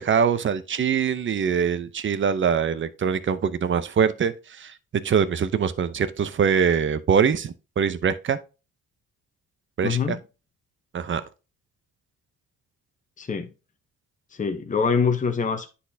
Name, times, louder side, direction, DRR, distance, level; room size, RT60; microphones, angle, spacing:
voice 1, 0.0-4.7 5.0-8.4 9.8-10.2 10.9-11.2, right 7 dB, 40° right, 0.7 m, -23 dB
voice 2, 9.8-10.2 13.2-13.5 14.4-15.7, left 5 dB, 25° left, 0.9 m, -24 dB
9.8 x 4.2 x 2.7 m
cardioid pair, 90°, 30 cm